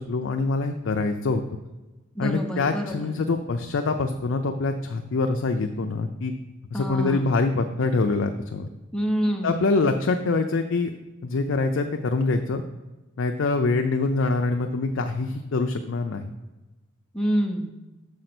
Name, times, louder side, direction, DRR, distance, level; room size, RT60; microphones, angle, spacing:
voice 1, 0.0-1.4 2.2-6.3 6.7-8.7 9.4-10.9 11.2-12.6 13.2-16.3, left 3 dB, 60° left, 5 dB, 0.4 m, -25 dB
voice 2, 2.1-3.1 6.7-7.4 8.9-9.6 17.1-17.7, equal, 5° left, 1 dB, 0.7 m, -27 dB
6.5 x 4.9 x 5.9 m, 1.1 s
head